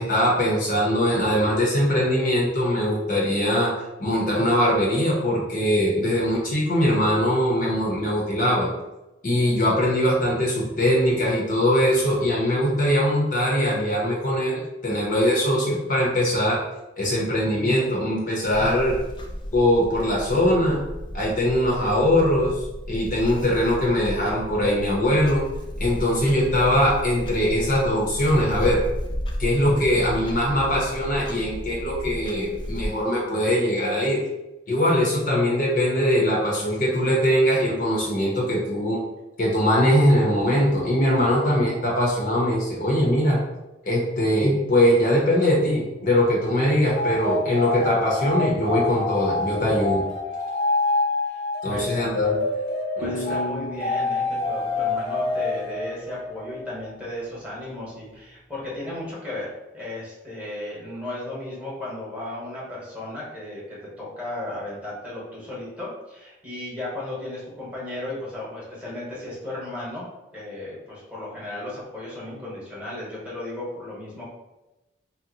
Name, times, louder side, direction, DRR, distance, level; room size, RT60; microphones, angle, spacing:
voice 1, 0.0-8.7 9.2-16.6 17.0-18.9 19.5-20.8 21.1-25.4 25.8-28.8 29.4-34.2 34.7-39.0 39.4-43.4 43.8-50.0 51.6-52.4 53.0-53.4, equal, 45° left, -3 dB, 0.7 m, -21 dB
Clock, 18.4-32.9, equal, 25° left, 0.3 m, -33 dB
sound 1, 46.9-56.7, left 3 dB, 75° left, 0.9 m, -27 dB
voice 2, 53.0-70.1 70.3-74.3, left 1 dB, 5° right, -7 dB, 1.0 m, -35 dB
sound 2, 53.0-56.0, left 1 dB, 70° right, 0.6 m, -36 dB
2.8 x 2.0 x 3.9 m, 0.99 s
head